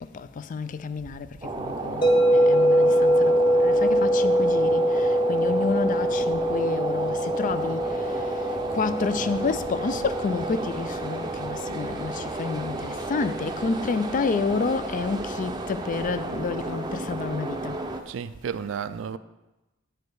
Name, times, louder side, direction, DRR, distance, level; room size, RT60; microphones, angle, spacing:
voice 1, 0.1-1.3 1.6-3.3 3.6-7.9 8.7-17.8, left 4 dB, 40° left, 0.4 m, -29 dB
sound 1, 1.4-18.0, right 2 dB, 20° right, 0.6 m, -33 dB
sound 2, 2.0-12.1, equal, 25° left, 1.0 m, -23 dB
voice 2, 18.1-19.2, right 7 dB, 75° right, 0.4 m, -32 dB
9.4 x 5.0 x 4.7 m
head